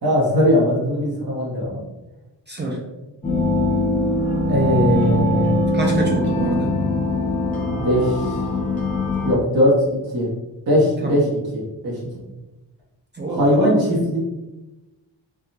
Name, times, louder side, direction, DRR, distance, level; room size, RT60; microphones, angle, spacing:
voice 1, 0.0-1.8 4.5-5.6 7.5-8.3 9.2-10.3 10.7-12.0 13.3-14.2, equal, 55° right, -5 dB, 1.3 m, -20 dB
voice 2, 2.5-2.8 5.7-6.8 11.0-11.3 13.1-14.1, right 2 dB, 25° right, -1 dB, 0.4 m, -26 dB
sound 1, 3.2-9.3, left 2 dB, 20° left, 0.7 m, -22 dB
3.6 x 2.3 x 2.7 m, 1.0 s
wide cardioid pair, 155°, 43 cm